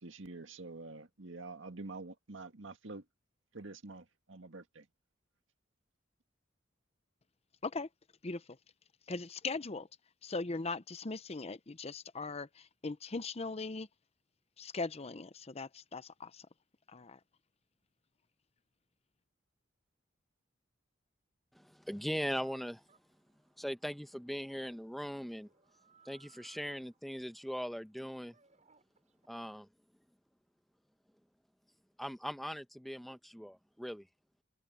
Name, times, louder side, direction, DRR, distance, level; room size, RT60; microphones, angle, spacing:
voice 1, 0.0-3.0 3.5-4.8, right 3 dB, 75° right, 1.9 m, -47 dB
voice 2, 9.1-9.9 10.2-13.9 14.6-16.4 16.9-17.2, left 3 dB, 35° left, 0.7 m, -39 dB
voice 3, 21.5-22.8 23.6-25.5 26.0-28.3 29.3-29.7 32.0-34.1, equal, ahead, 1.0 m, -40 dB
Chicken rooster, 22.3-29.3, right 6 dB, 40° right, 7.6 m, -67 dB
head